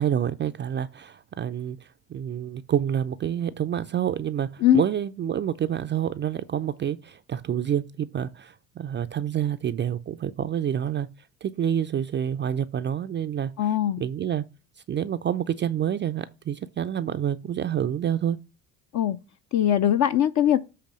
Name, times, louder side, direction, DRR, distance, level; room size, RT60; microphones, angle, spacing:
voice 1, 0.0-11.1 11.4-14.4 14.9-18.4, right 9 dB, 25° right, 0.4 m, -28 dB
voice 2, 13.6-14.0 18.9-19.2 19.5-20.6, left 11 dB, 40° left, 0.6 m, -21 dB
7.6 x 3.3 x 6.1 m
hypercardioid pair, 55°, 44 cm